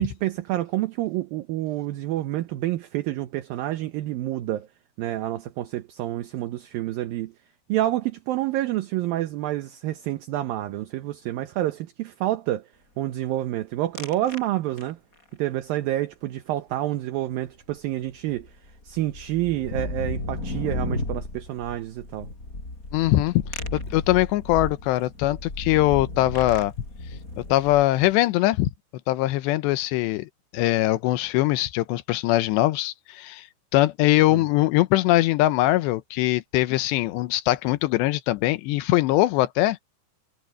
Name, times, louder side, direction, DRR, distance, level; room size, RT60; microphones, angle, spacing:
voice 1, 0.0-4.7 5.0-7.3 7.7-12.7 13.0-15.0 15.4-18.5 18.9-22.3 34.3-34.4, right 14 dB, 70° right, 2.4 m, -28 dB
sound 1, 13.9-14.5 14.8-15.2 17.7-17.8 18.0-28.1, left 2 dB, 20° left, 6.3 m, -34 dB
voice 2, 22.9-23.4 23.7-26.7 27.4-28.7 29.1-33.4 33.7-39.8, left 16 dB, 85° left, 3.1 m, -22 dB
omnidirectional pair, 4.9 m